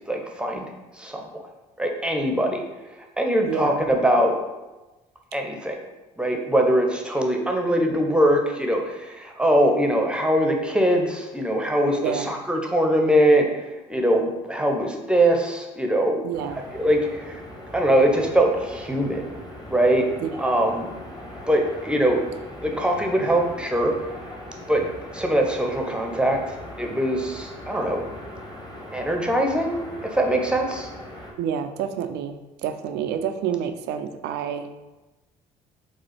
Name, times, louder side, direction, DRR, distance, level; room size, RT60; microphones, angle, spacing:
voice 1, 0.1-0.7 1.0-1.4 1.8-2.6 3.2-4.3 5.3-5.8 6.2-13.5 13.9-16.2 16.7-17.4 17.7-19.2 19.7-20.1 20.4-20.9 21.5-22.2 22.6-23.9 24.7-24.9 25.1-28.0 28.9-30.9, right 1 dB, 5° right, 2 dB, 0.8 m, -22 dB
voice 2, 3.5-3.8 12.0-12.3 16.2-16.6 20.2-20.3 31.4-34.8, right 8 dB, 60° right, 8 dB, 0.4 m, -28 dB
sound 1, 16.3-31.3, left 1 dB, 20° left, 1.4 m, -40 dB
4.3 x 2.4 x 4.2 m, 1.1 s
hypercardioid pair, 50°, 20 cm